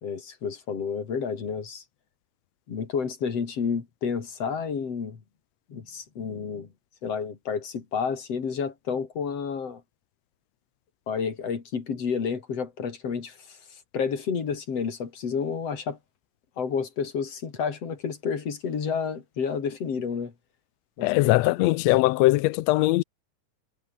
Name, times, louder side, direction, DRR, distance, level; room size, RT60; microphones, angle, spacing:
voice 1, 0.0-1.8 2.7-5.2 5.7-6.7 7.0-9.8 11.1-16.0 16.6-20.3 21.0-21.4, left 6 dB, 50° left, 4.1 m, -30 dB
voice 2, 21.0-23.0, left 19 dB, 85° left, 1.5 m, -21 dB
omnidirectional pair, 3.7 m